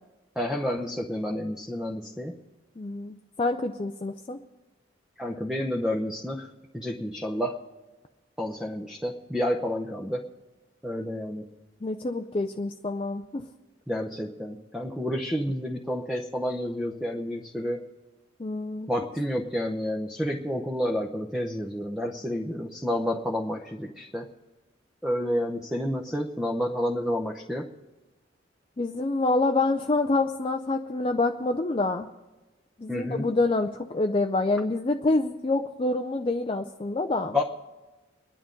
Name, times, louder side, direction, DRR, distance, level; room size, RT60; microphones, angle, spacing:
voice 1, 0.4-2.3 5.2-7.6 8.4-10.2 10.8-11.5 13.9-17.9 18.9-24.3 25.0-27.7 32.9-33.3 37.3-37.4, left 1 dB, 5° right, 0 dB, 0.8 m, -30 dB
voice 2, 2.8-4.4 11.8-13.5 18.4-18.9 28.8-32.1 32.8-37.4, left 2 dB, 30° left, 5 dB, 0.5 m, -27 dB
27.0 x 10.5 x 3.8 m, 1.2 s
head